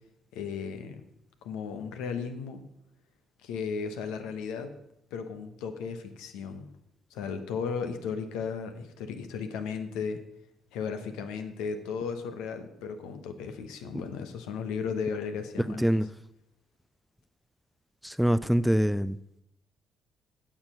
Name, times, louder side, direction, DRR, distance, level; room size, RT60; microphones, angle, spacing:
voice 1, 0.3-1.0 1.4-2.6 3.4-4.7 5.1-6.7 7.1-10.2 10.7-15.8, left 6 dB, 70° left, 7 dB, 1.0 m, -35 dB
voice 2, 15.7-16.1 18.0-19.2, equal, ahead, 16 dB, 0.4 m, -24 dB
8.6 x 7.0 x 5.7 m, 0.78 s
figure-of-eight pair, 45°, 0 cm